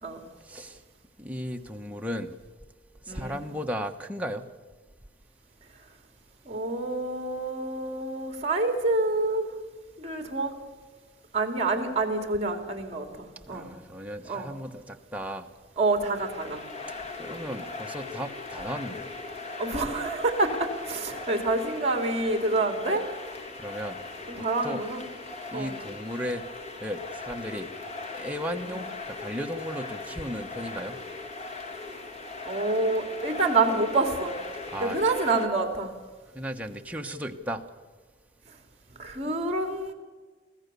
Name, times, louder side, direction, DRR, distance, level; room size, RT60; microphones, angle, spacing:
voice 1, 0.5-0.8 1.2-2.3 3.1-4.4 13.5-15.5 17.2-19.1 23.6-24.0 24.4-24.8 25.5-26.4 26.8-27.7 28.1-31.0 34.7-35.0 36.3-37.6, equal, 10° right, 3 dB, 1.1 m, -35 dB
voice 2, 3.1-3.4 6.5-9.5 10.0-10.5 11.3-13.7 14.2-14.5 15.8-16.6 19.6-23.0 24.3-25.0 25.5-25.7 28.6-28.7 32.4-34.4 34.8-35.9 39.0-39.9, right 2 dB, 35° right, 5 dB, 2.7 m, -27 dB
sound 1, 16.0-35.5, left 3 dB, 35° left, 1.8 m, -39 dB
24.0 x 15.5 x 6.8 m, 1.4 s
head